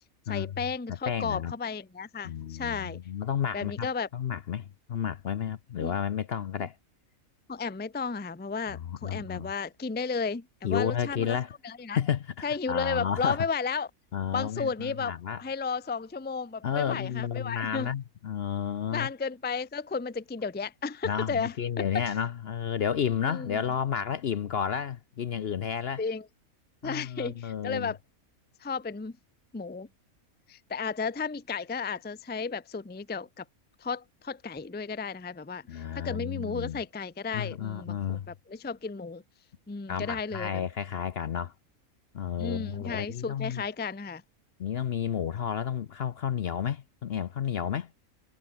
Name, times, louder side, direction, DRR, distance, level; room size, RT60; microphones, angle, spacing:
voice 1, 0.3-3.0 3.5-4.1 5.8-5.9 7.5-11.4 11.6-12.0 12.4-13.9 14.3-17.9 18.9-21.8 23.3-23.6 26.0-26.2 26.8-28.0 28.6-29.2 29.5-29.9 30.5-33.4 33.8-39.2 39.7-40.6 42.4-44.2, left 5 dB, 10° left, 0.4 m, -33 dB
voice 2, 1.1-1.5 2.2-3.9 4.1-6.8 8.7-9.5 10.6-11.5 11.9-13.4 14.1-15.4 16.6-19.1 21.0-26.0 26.8-27.9 35.7-36.8 37.3-38.3 39.9-41.5 42.1-43.6 44.6-47.9, left 8 dB, 55° left, 0.8 m, -31 dB
omnidirectional pair, 1.5 m